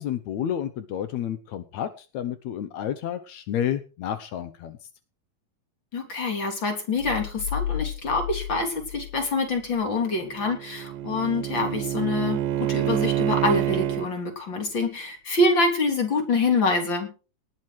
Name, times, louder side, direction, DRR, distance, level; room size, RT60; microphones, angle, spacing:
voice 1, 0.0-4.8, left 10 dB, 75° left, 11 dB, 1.7 m, -30 dB
voice 2, 5.9-17.1, left 3 dB, 30° left, 4 dB, 3.8 m, -26 dB
sound 1, 7.0-9.8, left 10 dB, 45° left, 4.0 m, -33 dB
Bowed string instrument, 10.0-14.1, right 12 dB, 75° right, 2.4 m, -27 dB
19.0 x 10.5 x 4.8 m, 0.35 s
omnidirectional pair, 4.5 m